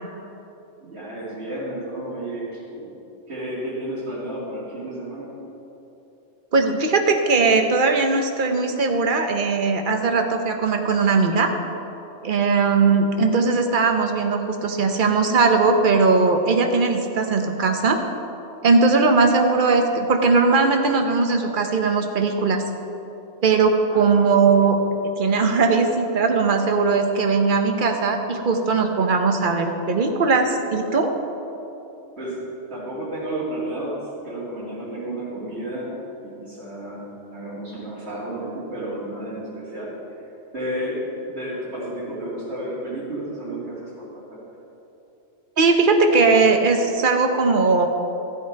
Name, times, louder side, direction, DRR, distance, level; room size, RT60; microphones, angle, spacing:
voice 1, 0.8-2.9 3.3-5.3 12.8-13.2 23.9-24.5 32.2-32.4 32.7-36.0 36.2-39.9 40.5-44.5, right 1 dB, 65° right, -9 dB, 2.8 m, -32 dB
voice 2, 6.5-11.5 12.2-18.0 18.6-22.6 23.4-24.8 25.2-31.1 45.6-47.9, right 4 dB, 50° right, 4 dB, 1.0 m, -19 dB
13.0 x 7.9 x 4.6 m, 3.0 s
omnidirectional pair, 1.2 m